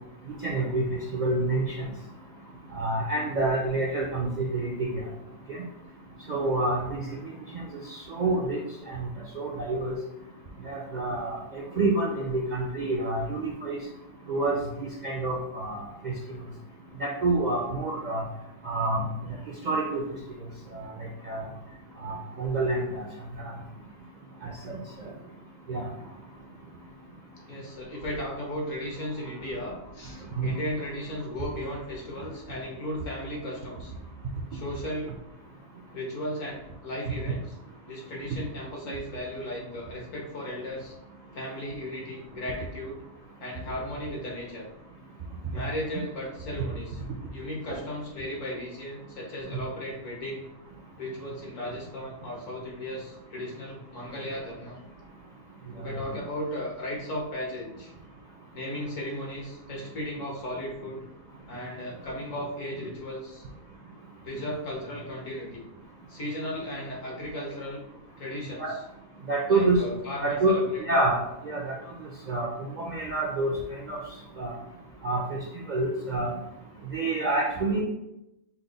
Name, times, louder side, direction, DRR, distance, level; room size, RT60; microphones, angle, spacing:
voice 1, 0.4-1.9 2.7-5.0 5.5-5.6 6.3-7.0 7.9-8.6 8.9-9.1 9.4-10.0 10.7-13.8 14.3-16.1 17.0-18.2 18.6-19.1 19.6-20.0 20.7-20.9 21.3-21.4 22.0-23.0 24.4-24.8 25.7-25.8 30.4-30.5 68.6-68.7 69.3-69.8 70.2-71.8 72.3-72.5 72.8-74.0 74.4-74.5 75.0-75.4 75.7-76.3 76.9-77.8, right 2 dB, 55° right, -1 dB, 0.5 m, -27 dB
voice 2, 27.5-33.9 34.5-35.2 35.9-37.5 37.9-40.9 41.3-43.0 43.4-44.7 45.5-47.0 47.3-50.4 51.0-54.8 55.8-57.9 58.5-61.1 61.5-63.5 64.2-65.6 66.1-67.8 68.2-68.8 69.5-70.8, equal, 70° left, -2 dB, 1.6 m, -36 dB
5.7 x 2.1 x 3.9 m, 0.87 s
omnidirectional pair, 1.4 m